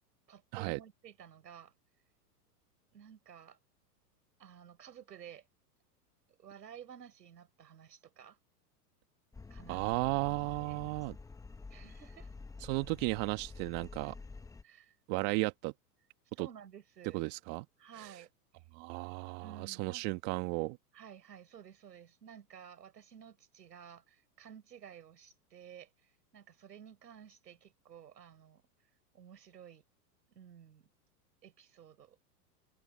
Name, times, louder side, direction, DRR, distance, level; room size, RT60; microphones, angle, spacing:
voice 1, 0.3-1.7 2.9-3.6 4.4-5.5 6.4-8.4 9.5-9.8 10.6-10.9 11.7-12.3 14.6-15.0 16.4-17.2 17.8-18.3 19.4-20.1 20.9-25.9 26.3-28.6 29.1-29.8 30.3-30.9 31.4-32.2, right 8 dB, 90° right, 5.7 m, -53 dB
sound 1, 9.3-14.6, left 4 dB, 5° left, 0.9 m, -49 dB
voice 2, 9.7-11.2 12.7-14.1 15.1-15.7 16.4-16.5 17.1-17.6 18.0-18.1 18.7-20.8, right 25 dB, 45° right, 1.3 m, -34 dB
open air
hypercardioid pair, 120°, 48 cm